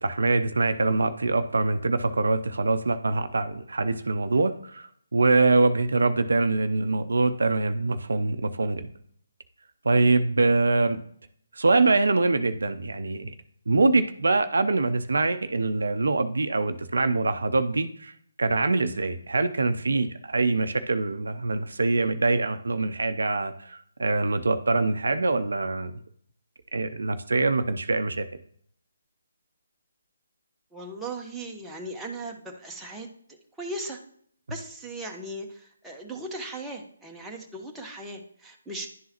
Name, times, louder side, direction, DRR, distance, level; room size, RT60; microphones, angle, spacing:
voice 1, 0.0-8.9 9.8-11.0 11.6-13.3 13.7-18.1 18.4-25.9 26.7-28.2, right 3 dB, 65° right, 10 dB, 0.5 m, -24 dB
voice 2, 30.7-34.0 34.5-38.9, right 2 dB, 5° right, -2 dB, 0.8 m, -38 dB
11.0 x 3.8 x 2.9 m, 0.62 s
figure-of-eight pair, 145°, 0 cm